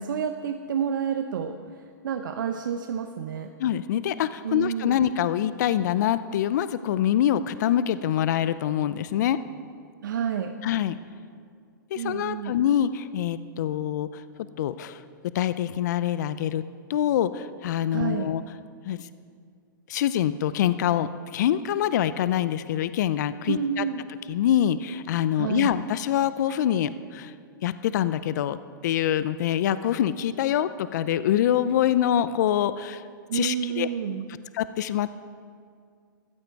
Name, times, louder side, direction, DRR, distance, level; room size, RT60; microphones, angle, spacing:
voice 1, 0.0-3.5 4.4-5.0 10.0-10.6 11.9-12.6 17.9-18.3 23.5-24.1 25.4-25.7 33.3-34.3, right 8 dB, 70° right, 6 dB, 0.8 m, -29 dB
voice 2, 3.6-9.4 10.6-10.9 11.9-14.2 14.6-15.0 15.3-16.6 16.9-18.4 18.8-19.1 19.9-23.8 24.3-27.3 27.6-28.6 28.8-33.0 33.3-33.9 34.5-35.1, left 10 dB, 55° left, 14 dB, 0.5 m, -25 dB
15.5 x 14.0 x 4.7 m, 2.2 s
hypercardioid pair, 130°, 11 cm